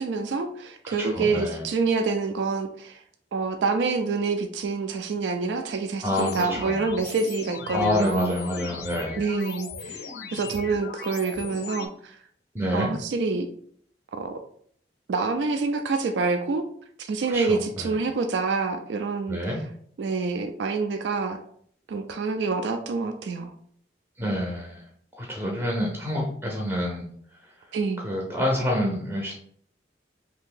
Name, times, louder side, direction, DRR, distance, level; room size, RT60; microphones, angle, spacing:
voice 1, 0.0-3.0 3.3-8.4 9.2-12.2 12.7-13.5 14.1-14.4 15.1-16.6 17.0-19.4 20.0-21.4 21.9-23.5 27.7-28.0, right 4 dB, 75° right, 6 dB, 0.3 m, -27 dB
voice 2, 0.8-1.7 6.0-6.8 7.7-9.2 12.5-12.9 17.3-17.9 19.3-19.6 24.2-24.8 25.2-27.1 28.0-29.3, left 1 dB, 10° right, -2 dB, 0.5 m, -27 dB
sound 1, 6.2-11.9, left 5 dB, 60° left, 0.4 m, -39 dB
2.8 x 2.6 x 3.7 m, 0.62 s
head